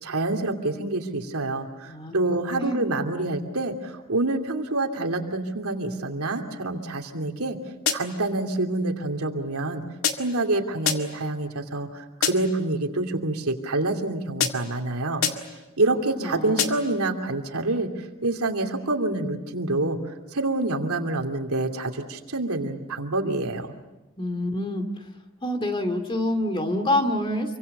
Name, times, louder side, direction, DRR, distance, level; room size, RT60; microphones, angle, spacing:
voice 1, 0.0-7.6 7.9-9.8 10.1-15.2 15.8-20.0 20.3-23.7, right 2 dB, 85° right, 3 dB, 2.8 m, -27 dB
voice 2, 1.9-2.8 15.9-16.7 24.2-25.0 25.4-27.6, left 1 dB, 25° left, 6 dB, 2.4 m, -27 dB
sound 1, 7.9-8.3 10.0-10.5 10.8-11.3 12.2-12.6 14.4-14.8 15.2-15.6 16.6-17.0, left 7 dB, 70° left, 2.0 m, -28 dB
28.5 x 24.5 x 6.7 m, 1.1 s
head